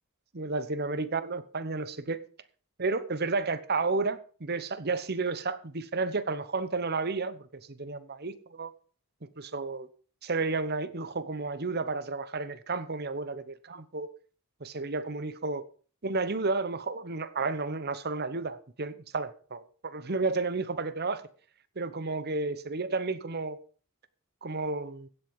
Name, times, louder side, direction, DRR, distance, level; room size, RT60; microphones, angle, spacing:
voice 1, 0.3-2.2 2.8-8.7 9.4-9.9 10.2-14.1 14.6-15.6 16.0-21.2 21.8-23.6 24.4-25.1, right 3 dB, 45° right, 1.0 m, -32 dB
16.0 x 7.9 x 5.4 m
head